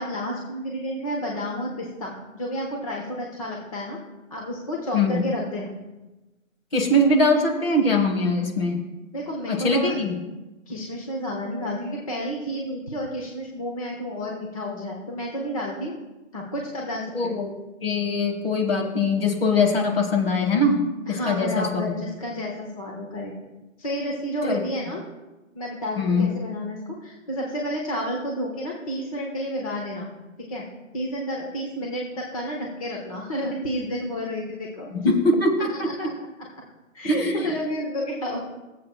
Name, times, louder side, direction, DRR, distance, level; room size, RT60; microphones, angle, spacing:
voice 1, 0.0-4.0 4.3-5.8 9.1-10.0 10.7-15.9 16.3-17.3 21.1-23.3 23.8-25.0 25.5-30.1 30.4-30.6 30.9-34.9 35.7-36.1 36.9-38.4, equal, 25° left, -2 dB, 0.9 m, -31 dB
voice 2, 4.9-5.2 6.7-8.8 9.5-10.1 17.1-17.5 17.8-20.8 21.1-22.0 24.4-24.6 25.9-26.3 34.9-36.1 37.0-37.5, left 2 dB, 45° left, 3 dB, 1.6 m, -22 dB
20.0 x 7.6 x 2.3 m, 1.1 s
hypercardioid pair, 165°, 40 cm